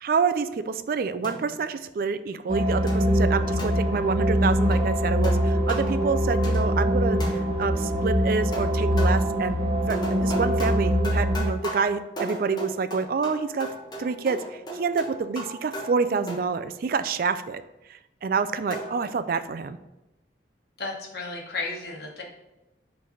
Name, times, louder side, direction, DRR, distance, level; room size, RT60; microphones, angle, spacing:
voice 1, 0.0-9.6 9.9-13.7 14.0-17.6 17.9-19.8, right 5 dB, 55° right, 11 dB, 0.4 m, -27 dB
sound 1, 1.2-1.7 2.9-4.1 4.7-5.0 5.2-6.0 6.4-6.9 7.2-7.8 8.5-9.4 9.9-16.7 18.7-19.0, right 1 dB, 25° left, 1.2 m, -36 dB
sound 2, 2.5-11.4, equal, 35° right, 0.8 m, -23 dB
voice 2, 20.8-22.2, left 3 dB, 60° left, -2 dB, 1.4 m, -33 dB
5.6 x 3.3 x 5.5 m, 0.97 s
head